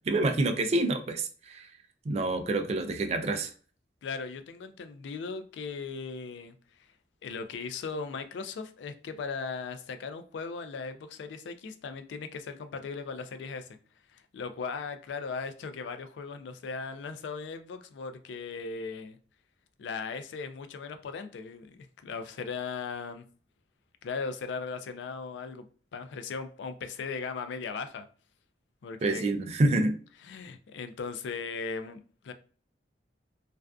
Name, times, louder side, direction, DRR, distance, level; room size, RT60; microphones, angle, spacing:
voice 1, 0.1-1.7 2.1-3.5 29.0-29.9, right 2 dB, 35° right, 0.3 m, -27 dB
voice 2, 4.0-6.9 7.2-13.7 14.1-19.2 19.8-23.3 24.0-25.7 25.9-28.1 28.8-29.2 30.2-32.3, left 5 dB, 80° left, 0.3 m, -38 dB
2.4 x 2.2 x 2.3 m
head